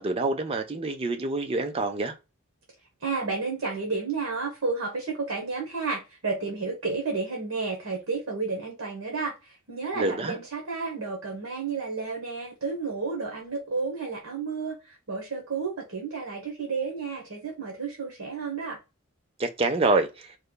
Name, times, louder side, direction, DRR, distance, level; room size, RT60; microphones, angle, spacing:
voice 1, 0.0-2.1 10.0-10.4 19.4-20.1, right 2 dB, 25° right, 0.4 m, -26 dB
voice 2, 3.0-18.8, right 4 dB, 65° right, 1.0 m, -31 dB
3.1 x 2.2 x 3.8 m
head